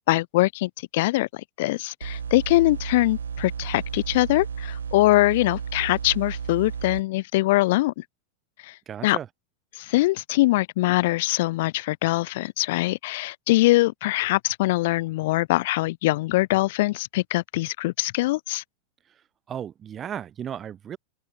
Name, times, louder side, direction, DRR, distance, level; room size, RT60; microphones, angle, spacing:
voice 1, 0.1-8.0 8.6-8.8 9.0-9.2 9.7-18.6, left 19 dB, 50° left, 0.4 m, -23 dB
sound 1, 2.0-7.0, right 7 dB, 70° right, 1.3 m, -33 dB
voice 2, 8.9-9.3 19.1-21.0, right 9 dB, 25° right, 4.2 m, -35 dB
figure-of-eight pair, 90°, 0 cm